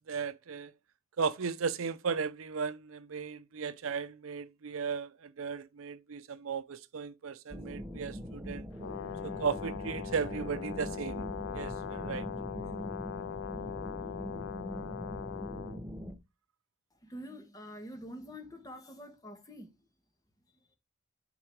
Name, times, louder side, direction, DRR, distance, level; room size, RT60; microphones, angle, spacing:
voice 1, 0.1-0.7 1.2-8.7 9.2-11.3 11.5-12.3, right 5 dB, 80° right, 0.5 m, -36 dB
sound 1, 7.5-16.2, equal, 5° right, 0.9 m, -42 dB
Brass instrument, 8.8-15.8, left 8 dB, 65° left, 0.3 m, -41 dB
voice 2, 17.0-19.7, equal, 15° left, 1.3 m, -46 dB
9.6 x 3.9 x 4.5 m
head